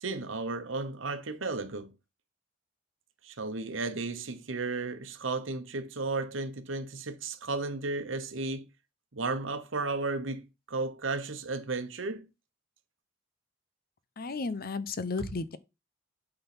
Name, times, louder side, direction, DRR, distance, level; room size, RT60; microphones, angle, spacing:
voice 1, 0.0-1.9 3.2-8.7 9.1-12.3 15.2-15.3, right 3 dB, 85° right, 1.1 m, -34 dB
voice 2, 14.2-15.6, left 4 dB, 50° left, 0.7 m, -33 dB
8.7 x 3.9 x 6.0 m
head